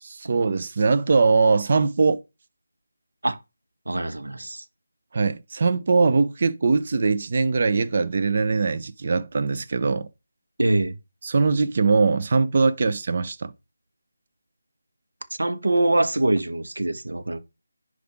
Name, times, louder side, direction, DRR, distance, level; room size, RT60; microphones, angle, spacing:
voice 1, 0.0-2.2 5.1-10.1 11.2-13.5, right 4 dB, 40° right, 0.8 m, -21 dB
voice 2, 3.9-4.6 10.6-11.0 15.4-17.4, right 2 dB, 80° right, 1.4 m, -23 dB
10.0 x 4.9 x 3.7 m
figure-of-eight pair, 165°, 0 cm